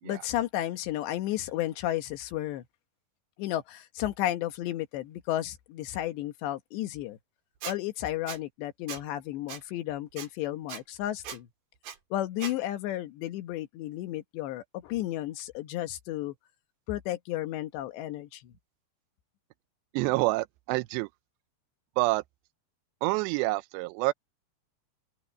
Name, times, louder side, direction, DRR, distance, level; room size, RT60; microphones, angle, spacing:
voice 1, 0.0-2.6 3.4-7.2 7.6-11.5 12.1-16.3 16.9-18.5, left 14 dB, 75° left, 3.3 m, -33 dB
Squeak, 7.6-7.8 8.3-8.4 8.9-9.0 9.5-9.6 10.2-10.3 10.7-10.8 11.2-11.4 11.8-12.0 12.4-12.5, right 8 dB, 60° right, 4.0 m, -38 dB
voice 2, 19.9-21.1 22.0-22.2 23.0-24.1, right 22 dB, 80° right, 2.7 m, -27 dB
open air
omnidirectional pair, 5.2 m